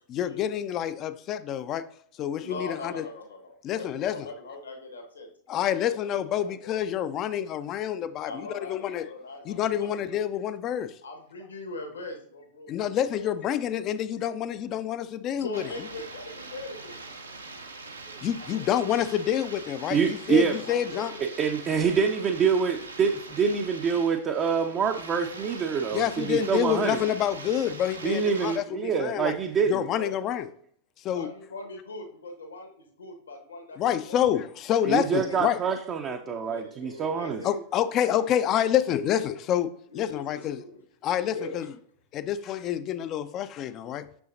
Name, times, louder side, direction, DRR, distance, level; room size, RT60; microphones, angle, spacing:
voice 1, 0.1-1.8 2.2-3.0 3.6-4.3 5.5-9.1 9.5-11.0 12.7-15.6 18.2-21.1 25.9-29.4 29.7-30.5 31.0-31.3 33.7-35.6 37.4-40.6 41.0-41.7 42.1-44.1, left 10 dB, 35° left, 0.4 m, -28 dB
voice 2, 2.4-5.3 5.6-6.8 8.2-10.1 11.0-13.3 15.4-17.0 18.4-18.6 20.6-21.3 29.9-30.2 31.1-33.8 34.1-34.2 34.9-35.4 36.1-37.6 39.9-40.8 41.2-41.6, left 2 dB, 75° left, 1.3 m, -41 dB
sound 1, 15.5-28.6, right 3 dB, 80° right, 0.7 m, -43 dB
voice 3, 19.9-20.6 21.4-27.0 28.0-29.8 34.8-37.4, right 6 dB, 30° right, 0.5 m, -26 dB
6.9 x 6.2 x 2.6 m
figure-of-eight pair, 90°, 0 cm